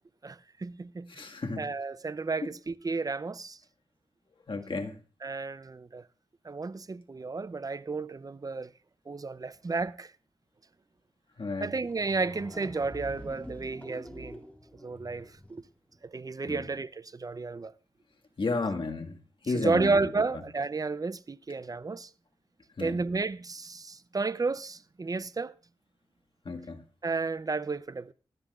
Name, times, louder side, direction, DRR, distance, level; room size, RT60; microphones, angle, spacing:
voice 1, 0.2-1.2 1.6-3.6 5.2-6.0 6.4-8.7 9.1-10.1 11.6-14.4 14.8-15.6 16.0-17.7 19.5-22.1 22.8-25.5 27.0-28.1, right 3 dB, 40° right, 0.6 m, -32 dB
voice 2, 1.1-1.6 4.5-4.9 11.4-11.7 16.5-16.6 18.4-19.2 19.5-20.1 22.8-22.9 26.5-26.8, left 3 dB, 60° left, 1.8 m, -32 dB
sound 1, 11.6-11.7 11.9-15.7, equal, 15° left, 2.5 m, -45 dB
20.0 x 12.5 x 2.5 m
cardioid pair, 50°, 10 cm